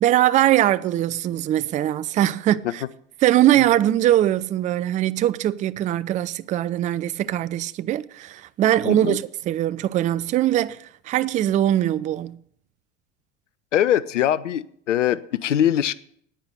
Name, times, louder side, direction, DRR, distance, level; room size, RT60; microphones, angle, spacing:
voice 1, 0.0-2.8 3.2-12.4, right 12 dB, 20° right, 0.3 m, -21 dB
voice 2, 8.8-9.2 13.7-15.9, left 11 dB, 80° left, 0.5 m, -22 dB
8.9 x 8.9 x 6.5 m
figure-of-eight pair, 70°, 36 cm